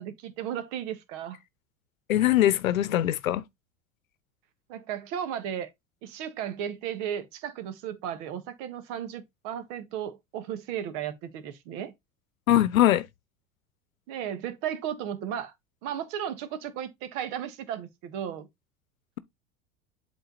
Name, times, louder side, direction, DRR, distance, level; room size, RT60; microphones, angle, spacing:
voice 1, 0.0-1.4 4.7-5.7 6.0-11.9 14.1-15.5 15.8-18.5, right 9 dB, 60° right, 1.7 m, -35 dB
voice 2, 2.1-3.4 12.5-13.1, left 13 dB, 85° left, 0.8 m, -22 dB
8.0 x 3.8 x 4.0 m
hypercardioid pair, 90°, 40 cm